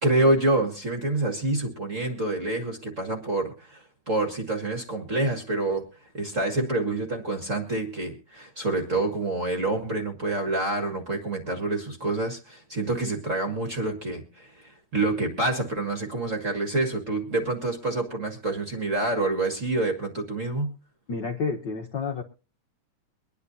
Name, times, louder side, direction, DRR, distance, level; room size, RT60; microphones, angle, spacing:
voice 1, 0.0-5.9 6.1-20.7, right 2 dB, 35° right, 3 dB, 1.4 m, -27 dB
voice 2, 21.1-22.2, left 4 dB, 75° left, 2 dB, 1.0 m, -30 dB
23.5 x 10.0 x 2.7 m, 0.33 s
omnidirectional pair, 3.7 m